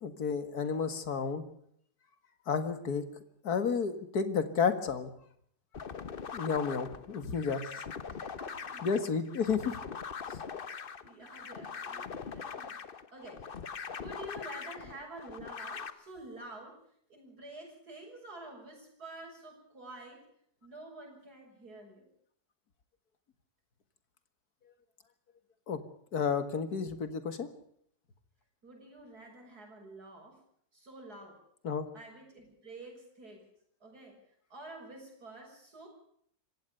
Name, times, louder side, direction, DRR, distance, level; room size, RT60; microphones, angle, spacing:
voice 1, 0.0-1.5 2.5-3.0 3.4-5.1 6.3-7.7 8.8-9.8 10.3-10.4 25.7-25.8 26.1-27.5 31.6-31.9, left 6 dB, 70° left, 10 dB, 2.3 m, -31 dB
sound 1, 5.7-15.9, left 6 dB, 40° left, 1.0 m, -42 dB
voice 2, 8.2-8.9 10.7-10.8 11.0-16.8 17.1-20.2 20.6-22.1 28.6-30.4 30.7-31.4 31.9-33.5 33.8-34.2 34.5-35.9, right 2 dB, 70° right, 1 dB, 7.2 m, -49 dB
26.0 x 16.0 x 6.8 m, 0.67 s
omnidirectional pair, 1.7 m